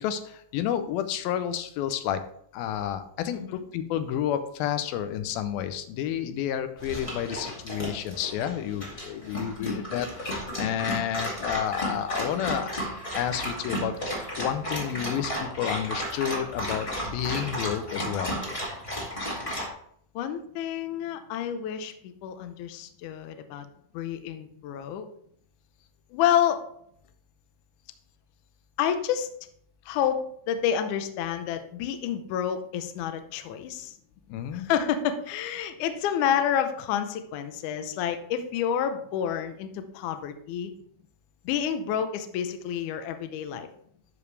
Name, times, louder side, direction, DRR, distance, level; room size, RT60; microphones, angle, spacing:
voice 1, 0.0-2.3 2.5-12.8 13.1-18.4 34.3-34.7, left 10 dB, 90° left, 10 dB, 2.5 m, -30 dB
Dog, 6.8-19.7, equal, 15° left, 1.4 m, -33 dB
voice 2, 20.2-23.7 23.9-25.1 26.1-26.6 28.8-29.3 29.9-30.2 30.5-33.9 34.5-40.7 41.5-43.7, left 9 dB, 75° left, 8 dB, 2.0 m, -29 dB
12.0 x 5.0 x 3.3 m, 0.68 s
omnidirectional pair, 4.1 m